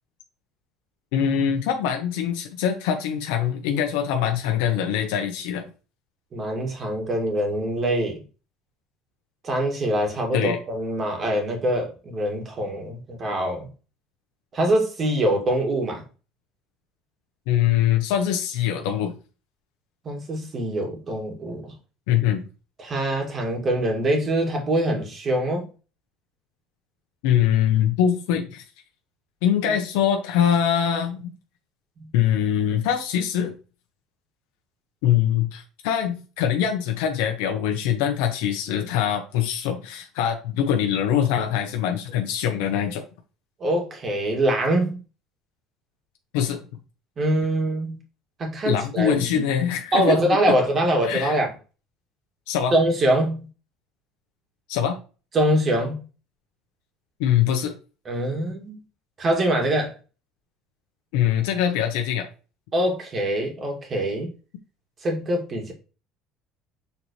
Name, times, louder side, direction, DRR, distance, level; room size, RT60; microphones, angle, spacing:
voice 1, 1.1-5.7 10.3-10.6 17.5-19.2 22.1-22.4 27.2-28.6 29.4-31.3 32.1-33.5 35.0-43.0 46.3-46.6 48.6-50.2 51.0-51.4 52.5-52.7 54.7-55.0 57.2-57.8 61.1-62.3, left 9 dB, 90° left, 1.0 m, -23 dB
voice 2, 6.3-8.2 9.4-13.7 14.5-16.0 20.0-21.7 22.8-25.7 29.6-29.7 32.0-32.1 43.6-45.0 47.2-48.0 48.4-49.5 49.9-51.5 52.7-53.5 55.3-56.0 58.1-58.8 59.2-59.9 62.7-64.3 65.0-65.7, right 1 dB, 30° right, 2.3 m, -24 dB
6.9 x 4.3 x 3.2 m
cardioid pair, 130°, 0 cm